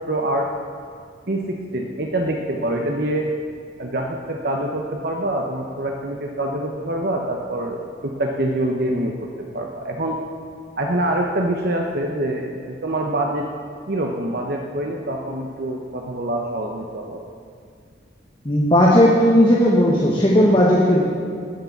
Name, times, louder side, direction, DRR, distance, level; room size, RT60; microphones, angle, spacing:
voice 1, 0.1-0.5 1.3-3.3 3.8-9.3 9.5-10.2 10.8-13.4 13.9-17.2, right 1 dB, 55° right, 1 dB, 1.0 m, -25 dB
voice 2, 18.4-21.0, equal, 25° left, -4 dB, 1.5 m, -15 dB
19.5 x 6.7 x 7.3 m, 2.1 s
head